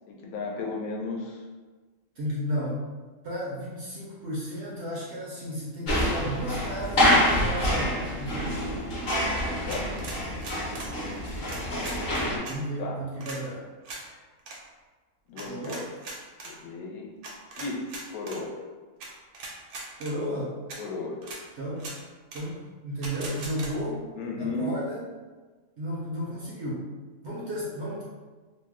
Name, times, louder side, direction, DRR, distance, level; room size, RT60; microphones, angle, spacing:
voice 1, 0.1-1.4 9.7-9.9 12.8-13.0 15.3-15.7 16.4-17.1 17.6-17.8 18.1-18.5 20.8-21.2 24.2-24.8, left 3 dB, 80° left, -1 dB, 1.1 m, -34 dB
voice 2, 2.2-2.8 3.2-8.8 12.4-13.6 15.3-15.9 20.0-20.5 21.6-21.8 22.3-24.1 24.4-25.1 25.8-26.9 27.2-28.0, equal, 65° right, -5 dB, 0.7 m, -33 dB
sound 1, 5.9-12.4, equal, 50° left, 0.9 m, -26 dB
sound 2, 9.7-10.9 11.4-12.6 13.2-13.4 13.8-14.0 14.4-14.6 15.4-16.5 17.2-18.4 19.0-19.1 19.3-20.1 20.7-20.8 21.2-21.4 21.8-22.0 22.3-22.4 23.0-23.7, right 3 dB, 90° right, 1.1 m, -40 dB
2.7 x 2.1 x 3.5 m, 1.4 s
omnidirectional pair, 1.5 m